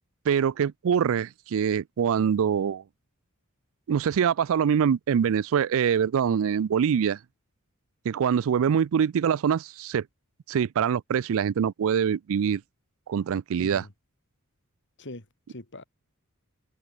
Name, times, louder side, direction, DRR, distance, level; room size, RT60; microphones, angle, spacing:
voice 1, 0.3-2.8 3.9-7.2 8.1-10.0 10.5-12.6 13.1-13.8, right 7 dB, 65° right, 0.4 m, -24 dB
voice 2, 13.6-13.9 15.0-15.8, left 1 dB, 55° left, 3.7 m, -43 dB
head